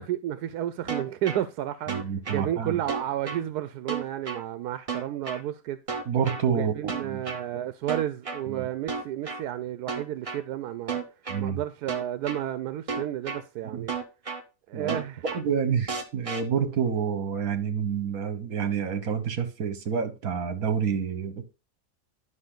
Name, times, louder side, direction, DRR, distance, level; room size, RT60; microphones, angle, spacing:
voice 1, 0.0-5.8 6.5-11.0 11.4-14.0 14.7-15.2, right 12 dB, 90° right, 1.1 m, -32 dB
sound 1, 0.9-1.4 1.9-2.4 2.9-3.4 3.9-4.4 4.9-5.4 5.9-6.4 6.9-7.4 7.9-8.4 8.9-9.4 9.9-10.4 10.9-11.4 11.9-12.4 12.9-13.4 13.9-14.4 14.9-15.4 15.9-16.4, right 5 dB, 30° right, 0.8 m, -32 dB
voice 2, 1.9-2.8 6.1-6.7 7.0-7.2 8.5-8.7 11.3-11.6 13.7-13.9 14.7-15.0 15.3-21.5, right 7 dB, 70° right, 1.7 m, -28 dB
11.0 x 5.7 x 3.9 m
omnidirectional pair, 1.6 m